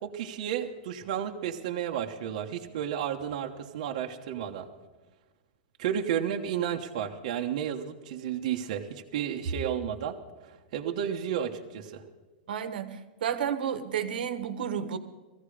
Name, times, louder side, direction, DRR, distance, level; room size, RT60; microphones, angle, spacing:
voice 1, 0.0-4.7 5.8-10.2 10.7-12.0, right 9 dB, 45° right, 2 dB, 1.1 m, -32 dB
voice 2, 12.5-15.0, right 8 dB, 75° right, 10 dB, 1.3 m, -31 dB
18.5 x 15.0 x 5.0 m, 1.3 s
supercardioid pair, 175°, 5 cm